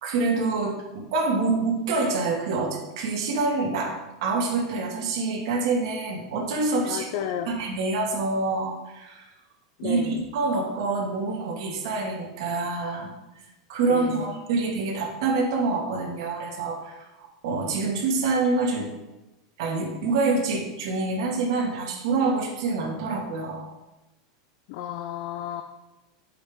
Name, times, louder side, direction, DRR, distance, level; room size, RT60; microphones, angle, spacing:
voice 1, 0.0-7.1 7.5-9.2 9.8-13.1 13.7-18.9 19.6-23.7, right 3 dB, 65° right, 0 dB, 1.7 m, -26 dB
voice 2, 6.8-7.6 9.8-10.2 13.9-14.3 24.7-25.6, left 9 dB, 60° left, 6 dB, 0.5 m, -32 dB
6.9 x 5.5 x 3.5 m, 1.0 s
supercardioid pair, 125°, 3 cm